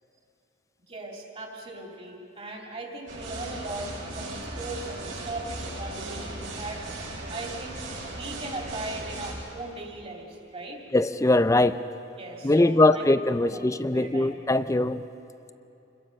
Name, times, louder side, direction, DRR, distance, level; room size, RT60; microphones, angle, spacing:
voice 1, 0.9-6.9 7.3-7.8 8.1-10.8 12.2-13.1 13.4-13.6 13.9-14.4, right 2 dB, 30° right, 0 dB, 3.1 m, -38 dB
sound 1, 3.1-9.3, right 2 dB, 65° right, 6.8 m, -37 dB
voice 2, 10.9-11.8 12.4-15.0, left 2 dB, 15° left, 12 dB, 0.4 m, -21 dB
27.5 x 22.0 x 5.4 m, 2.8 s
head